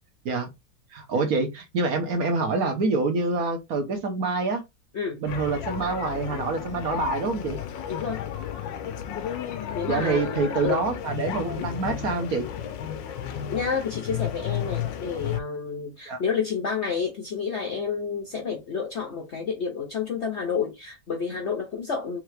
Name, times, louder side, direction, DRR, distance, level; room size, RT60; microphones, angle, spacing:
voice 1, 0.9-4.6 5.2-7.6 9.9-12.5 16.1-16.2, right 3 dB, 60° right, 1.2 m, -26 dB
sound 1, 5.3-15.4, left 10 dB, 80° left, 1.3 m, -33 dB
voice 2, 7.9-8.2 9.7-10.9 13.5-22.2, left 6 dB, 55° left, 0.8 m, -30 dB
3.7 x 3.2 x 3.3 m
omnidirectional pair, 2.0 m